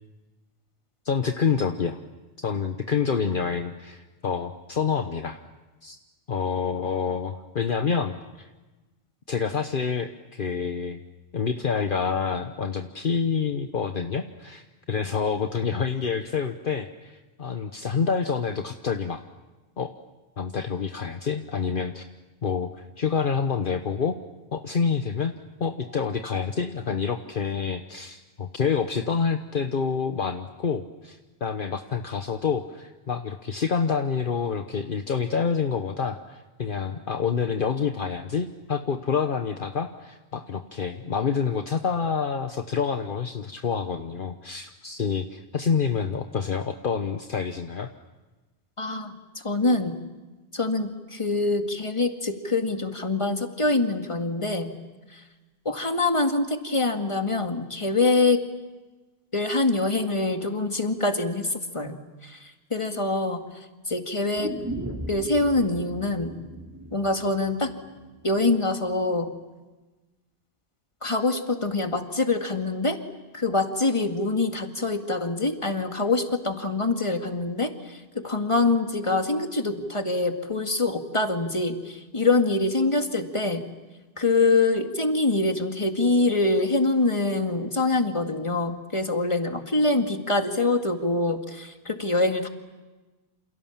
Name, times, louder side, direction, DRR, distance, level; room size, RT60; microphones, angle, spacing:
voice 1, 1.0-2.0 2.4-5.4 5.8-6.0 6.3-8.5 9.3-11.0 11.3-19.2 19.8-19.9 20.4-22.0 22.4-24.2 24.5-25.3 25.6-47.9, left 6 dB, 55° left, 7 dB, 1.2 m, -27 dB
voice 2, 48.8-50.0 50.5-54.8 55.1-55.2 55.7-58.4 59.3-63.5 63.9-64.5 65.1-66.4 66.9-67.7 68.2-69.3 71.0-73.0 73.3-83.7 84.2-92.5, left 2 dB, 30° left, 5 dB, 2.1 m, -25 dB
sound 1, 64.3-68.4 68.7-68.8, right 1 dB, 15° right, 3.9 m, -37 dB
28.5 x 28.0 x 7.3 m, 1.2 s
omnidirectional pair, 1.0 m